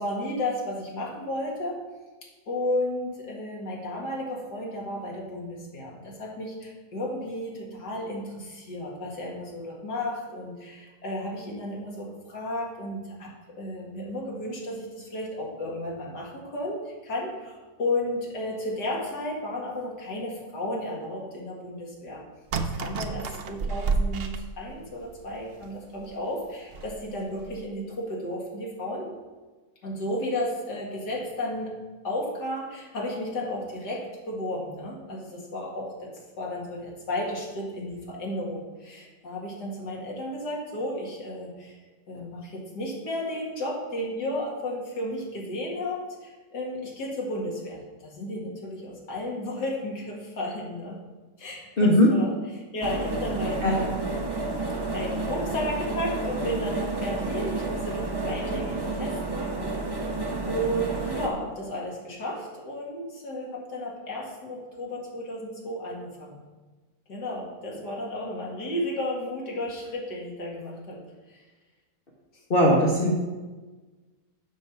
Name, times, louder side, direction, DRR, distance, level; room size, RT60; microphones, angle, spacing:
voice 1, 0.0-1.8 2.5-22.2 22.6-29.1 29.8-31.8 32.0-36.1 36.4-41.8 42.1-51.0 51.4-54.0 54.9-59.7 60.5-66.4 67.1-71.0 71.3-71.4, left 1 dB, 75° left, -2 dB, 2.5 m, -33 dB
sound 1, 22.5-25.0 25.6-25.7 26.0-26.1 26.7-27.0 27.4-27.6, right 4 dB, 75° right, 0.5 m, -30 dB
voice 2, 51.8-52.1 53.6-53.7 72.5-73.1, left 1 dB, 35° left, -4 dB, 1.3 m, -19 dB
sound 2, 52.8-61.3, right 2 dB, 20° right, 0.7 m, -30 dB
8.0 x 6.4 x 5.7 m, 1.3 s
omnidirectional pair, 1.8 m